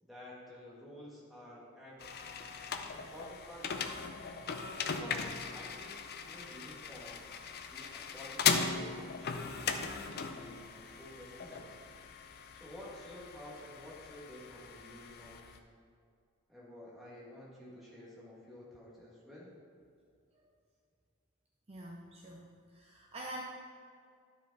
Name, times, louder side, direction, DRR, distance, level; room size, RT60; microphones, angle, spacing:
voice 1, 0.0-2.0 2.9-4.0 4.7-7.4 7.7-11.8 12.5-15.6 16.5-19.5, left 1 dB, ahead, -7 dB, 2.0 m, -51 dB
sound 1, 2.0-15.6, left 6 dB, 50° left, 0.5 m, -38 dB
voice 2, 21.7-22.5 22.7-23.4, right 1 dB, 30° right, -2 dB, 0.6 m, -45 dB
11.0 x 5.1 x 4.1 m, 2.3 s
head